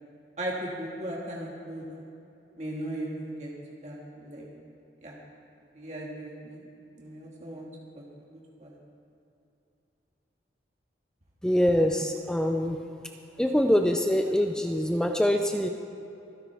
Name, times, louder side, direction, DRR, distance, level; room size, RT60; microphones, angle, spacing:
voice 1, 0.4-2.1 2.6-3.5 3.8-4.5 5.0-5.1 5.7-6.6 7.0-7.7 7.9-8.1 8.6-8.8, right 1 dB, 40° right, -3 dB, 1.8 m, -37 dB
voice 2, 11.4-12.8 13.4-15.7, equal, 5° left, 4 dB, 0.4 m, -24 dB
25.0 x 10.5 x 3.5 m, 2.8 s
head